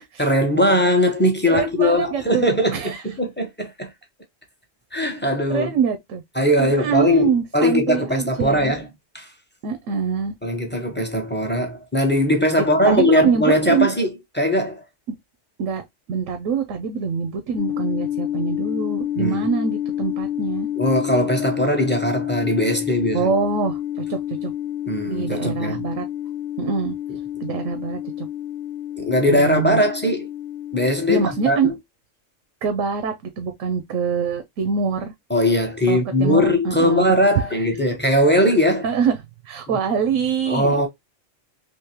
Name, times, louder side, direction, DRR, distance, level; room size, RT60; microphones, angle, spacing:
voice 1, 0.2-3.9 4.9-5.7 6.4-8.8 9.1-9.3 10.4-14.1 14.3-14.8 19.2-19.4 20.8-23.3 24.9-25.8 29.0-30.3 30.7-31.6 35.3-38.9 40.5-40.9, left 1 dB, 10° left, 0.8 m, -20 dB
voice 2, 1.5-2.5 2.7-3.0 5.5-6.2 6.6-8.7 9.6-10.3 12.8-13.9 15.6-15.8 16.1-20.7 23.1-24.5 25.1-26.1 26.6-26.9 27.4-28.3 29.3-29.8 31.1-31.7 32.6-35.1 35.9-37.2 38.8-39.2 39.4-40.9, right 6 dB, 90° right, 1.1 m, -24 dB
sound 1, 17.6-31.7, left 11 dB, 85° left, 1.0 m, -29 dB
3.7 x 2.9 x 2.9 m
omnidirectional pair, 1.3 m